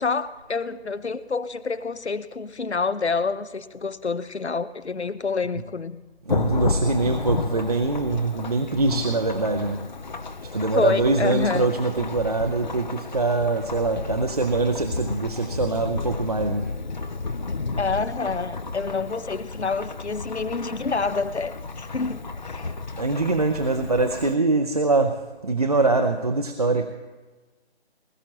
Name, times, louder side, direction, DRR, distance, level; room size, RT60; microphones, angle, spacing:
voice 1, 0.0-6.0 10.7-11.7 17.8-22.7, left 4 dB, 90° left, 15 dB, 0.8 m, -27 dB
Thunderstorm / Rain, 6.3-24.3, left 3 dB, 45° left, 0.5 m, -32 dB
voice 2, 6.3-9.8 10.4-16.7 23.0-25.2 25.4-26.9, right 3 dB, 35° right, 5 dB, 0.5 m, -23 dB
20.0 x 12.5 x 2.9 m, 1.2 s
figure-of-eight pair, 155°, 32 cm